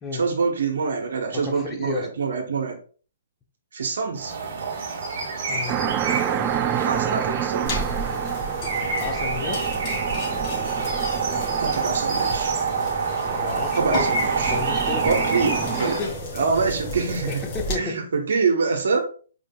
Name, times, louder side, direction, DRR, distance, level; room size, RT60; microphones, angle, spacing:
voice 1, 0.1-2.8 3.7-4.3 6.8-7.8 11.6-12.5 13.7-14.5 15.0-16.0 16.3-17.4 17.8-19.0, right 4 dB, 75° right, 3 dB, 1.0 m, -25 dB
voice 2, 1.3-2.1 5.5-5.8 6.3-6.7 9.0-9.7 13.1-14.2 14.5-16.1 17.3-18.0, left 4 dB, 20° left, 3 dB, 1.0 m, -33 dB
sound 1, 4.1-16.0, right 5 dB, 50° right, 1.6 m, -27 dB
sound 2, 5.7-15.8, right 10 dB, 25° right, 0.4 m, -30 dB
sound 3, 7.7-17.7, equal, 40° left, 2.4 m, -33 dB
5.0 x 4.5 x 2.3 m, 0.40 s
hypercardioid pair, 140°, 0 cm